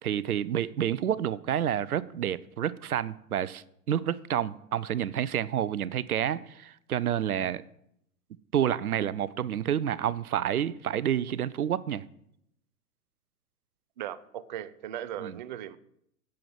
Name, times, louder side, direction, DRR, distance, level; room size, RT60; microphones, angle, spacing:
voice 1, 0.0-7.6 8.5-12.0 15.2-15.4, right 10 dB, 70° right, 0.7 m, -29 dB
voice 2, 14.0-15.8, right 11 dB, 30° right, 0.4 m, -38 dB
8.5 x 7.9 x 7.7 m
figure-of-eight pair, 115°, 47 cm